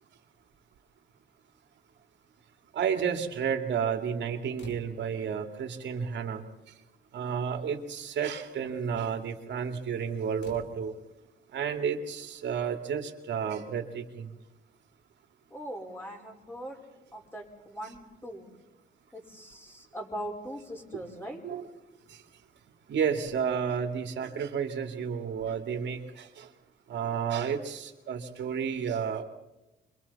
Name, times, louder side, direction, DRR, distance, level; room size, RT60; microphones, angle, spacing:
voice 1, 2.7-6.4 7.1-10.9 11.5-14.3 20.9-21.0 21.4-21.7 22.1-22.2 22.9-26.5 26.9-29.2, right 7 dB, 65° right, 4 dB, 2.5 m, -31 dB
sound 1, 4.6-5.3 6.4-6.5 6.8-7.1 7.4-7.7 10.4-11.3 12.9-13.0, left 3 dB, 60° left, 2.7 m, -50 dB
voice 2, 15.5-16.8 17.1-18.5 19.1-21.4, equal, 10° left, 0 dB, 4.8 m, -40 dB
26.5 x 23.5 x 4.2 m, 1.0 s
cardioid pair, 90°, 20 cm